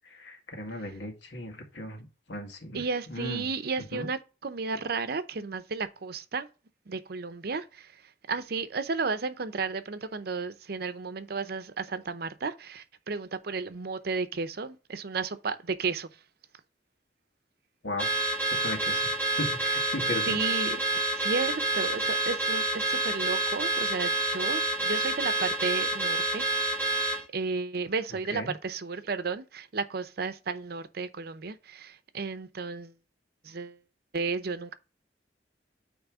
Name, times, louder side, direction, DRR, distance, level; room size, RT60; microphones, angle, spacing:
voice 1, 0.2-2.8 3.1-3.5 3.9-4.1 17.8-18.1 18.6-19.1 19.4-20.4 28.3-28.5, left 1 dB, 90° left, 1.9 m, -36 dB
voice 2, 2.7-6.5 6.9-8.0 8.3-16.1 20.3-26.5 27.3-32.9 33.4-33.8 34.1-34.7, right 4 dB, 60° right, 0.7 m, -33 dB
Car / Alarm, 18.0-27.2, right 2 dB, 5° left, 1.2 m, -28 dB
9.0 x 3.3 x 4.8 m
head